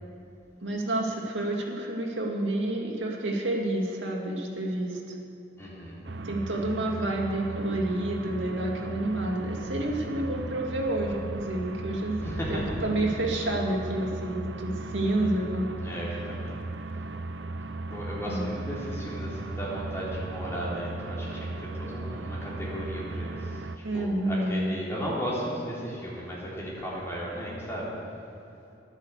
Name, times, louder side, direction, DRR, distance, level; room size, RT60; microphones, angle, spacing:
voice 1, 0.6-5.2 6.2-12.2 12.5-15.7 18.3-18.5 23.8-24.7, right 1 dB, 85° right, 0 dB, 2.3 m, -29 dB
voice 2, 5.6-6.0 12.2-12.8 14.9-15.4 15.8-16.5 17.9-27.9, equal, 15° left, -6 dB, 3.4 m, -35 dB
sound 1, 6.0-23.8, right 2 dB, 70° right, 0.7 m, -37 dB
11.5 x 11.0 x 8.1 m, 2.8 s
head